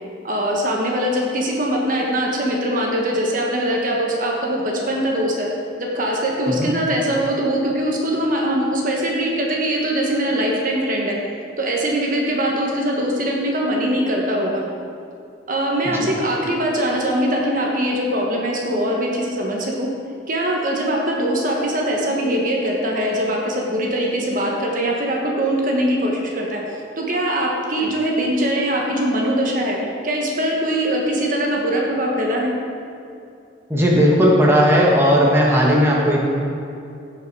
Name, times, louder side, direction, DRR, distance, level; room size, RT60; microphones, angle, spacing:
voice 1, 0.2-5.5 5.8-11.2 11.6-14.6 15.5-19.9 20.3-29.8 30.0-32.5, right 1 dB, 45° right, -1 dB, 1.3 m, -22 dB
voice 2, 33.7-36.3, equal, 15° right, -4 dB, 1.5 m, -16 dB
16.0 x 5.6 x 4.7 m, 2.5 s
head